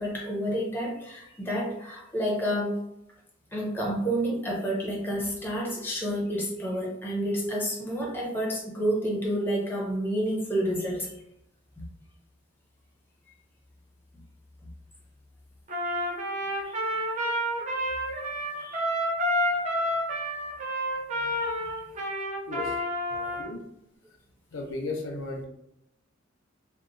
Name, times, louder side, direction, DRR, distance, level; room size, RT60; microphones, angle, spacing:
voice 1, 0.0-2.8 3.5-11.1 16.6-17.0 18.6-18.9 21.2-21.8 23.1-23.2, equal, 10° left, -3 dB, 0.6 m, -30 dB
Trumpet, 15.7-23.5, equal, 40° right, 0.6 m, -29 dB
voice 2, 23.1-23.6 24.5-25.5, left 2 dB, 75° left, 2 dB, 0.5 m, -35 dB
2.9 x 2.0 x 2.5 m, 0.80 s
head